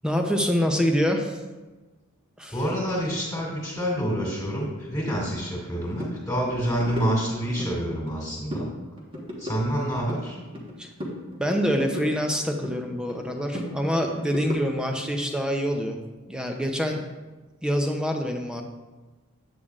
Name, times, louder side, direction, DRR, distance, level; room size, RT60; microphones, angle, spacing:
voice 1, 0.0-1.4 2.4-2.6 10.8-10.9 11.4-16.0 16.3-17.0 17.6-18.6, equal, 5° right, 3 dB, 0.5 m, -26 dB
voice 2, 2.5-8.7 9.4-10.4, equal, 20° left, -4 dB, 2.1 m, -27 dB
sound 1, 5.1-5.2 5.6-5.7 6.0-6.2 6.5-7.7 8.1-8.7 9.0-10.7 11.0-12.8 13.1-14.9, equal, 25° right, 1.3 m, -35 dB
8.5 x 8.3 x 2.4 m, 1.2 s
head